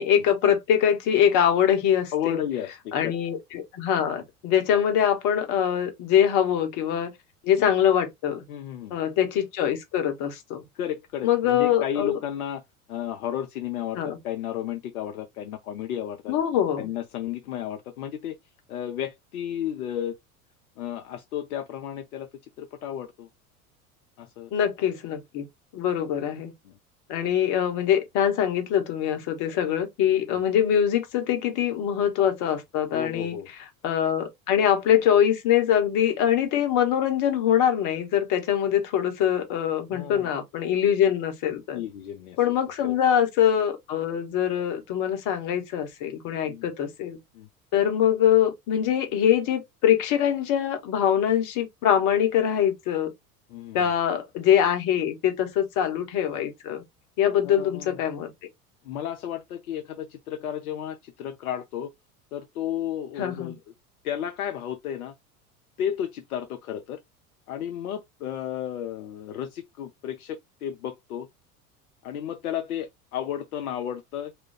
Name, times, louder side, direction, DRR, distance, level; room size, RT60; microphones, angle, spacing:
voice 1, 0.0-2.4 2.9-7.1 7.4-8.4 8.9-10.6 11.2-12.2 14.0-14.2 16.3-16.9 24.5-25.4 25.7-26.5 27.1-33.4 33.8-41.8 42.4-47.2 47.7-53.1 53.7-56.8 57.2-58.3 63.2-63.5, left 9 dB, 40° left, 0.9 m, -23 dB
voice 2, 2.1-3.1 8.5-8.9 10.8-12.6 12.9-16.4 16.8-18.4 18.7-20.2 20.8-22.3 22.6-23.3 24.2-24.5 26.6-26.8 32.9-33.5 39.9-40.3 41.7-42.4 42.8-43.0 46.5-46.7 47.3-47.5 53.5-53.8 57.4-58.0 58.8-61.9 62.3-63.6 64.0-65.1 65.8-67.0 67.5-71.3 72.0-74.3, left 10 dB, 70° left, 0.5 m, -33 dB
2.4 x 2.2 x 3.2 m
figure-of-eight pair, 75°, 45 cm